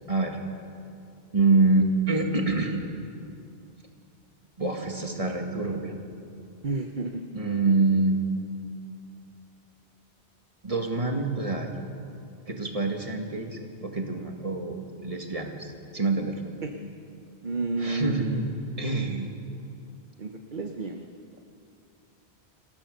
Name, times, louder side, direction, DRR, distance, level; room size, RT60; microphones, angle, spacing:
voice 1, 0.1-0.4 1.3-2.8 4.6-5.9 7.3-8.2 10.6-11.7 12.5-16.4 17.8-18.4 18.8-19.3, right 3 dB, 30° right, 2 dB, 2.1 m, -26 dB
voice 2, 6.6-7.2 16.6-16.8 17.4-18.4 20.2-21.1, right 2 dB, 50° right, 4 dB, 1.1 m, -30 dB
26.0 x 16.0 x 6.7 m, 2.5 s
omnidirectional pair, 1.1 m